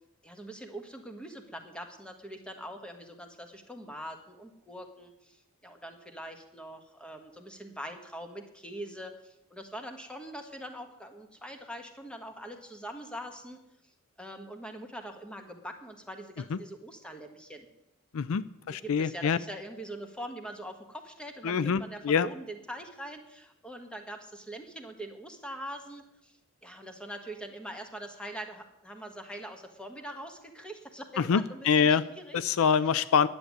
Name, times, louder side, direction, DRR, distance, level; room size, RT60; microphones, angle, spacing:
voice 1, 0.2-13.6 14.2-17.7 18.7-32.4 32.7-33.0, right 1 dB, 5° left, 5 dB, 1.5 m, -43 dB
voice 2, 18.1-19.4 21.4-22.3 31.2-32.0 32.3-33.3, left 6 dB, 65° left, 16 dB, 0.4 m, -25 dB
10.5 x 7.9 x 9.5 m, 0.88 s
head